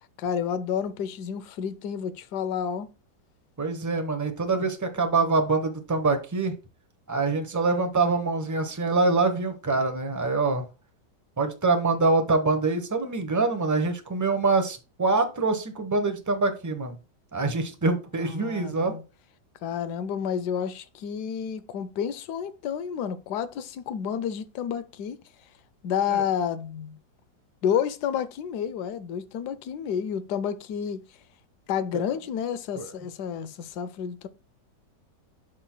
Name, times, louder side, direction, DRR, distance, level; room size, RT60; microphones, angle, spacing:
voice 1, 0.2-2.9 18.2-19.0 19.6-25.2 25.8-26.9 27.6-31.0 31.7-34.3, left 8 dB, 75° left, 1.2 m, -30 dB
voice 2, 3.6-6.5 7.1-10.6 11.4-17.0 17.3-18.9 26.1-26.2 32.8-32.9, right 3 dB, 15° right, 0.6 m, -25 dB
12.0 x 4.4 x 2.2 m
omnidirectional pair, 1.9 m